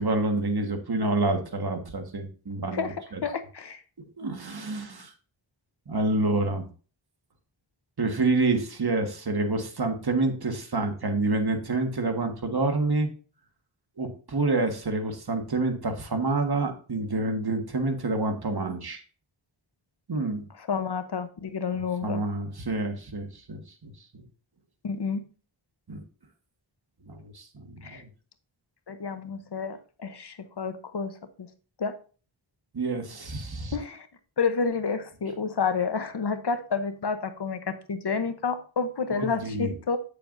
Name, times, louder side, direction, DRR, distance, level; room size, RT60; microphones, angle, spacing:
voice 1, 0.0-3.2 4.2-5.1 5.9-6.7 8.0-13.1 14.0-19.0 20.1-20.5 22.0-24.2 25.9-26.0 27.1-28.1 32.7-33.8 39.1-39.7, right 2 dB, 50° right, 5 dB, 1.6 m, -28 dB
voice 2, 3.2-3.8 20.6-22.2 24.8-25.2 27.8-28.0 28.9-31.5 31.8-32.0 33.7-34.1 34.4-40.0, left 5 dB, 55° left, 9 dB, 0.9 m, -30 dB
8.6 x 6.8 x 2.6 m, 0.38 s
wide cardioid pair, 50°, 47 cm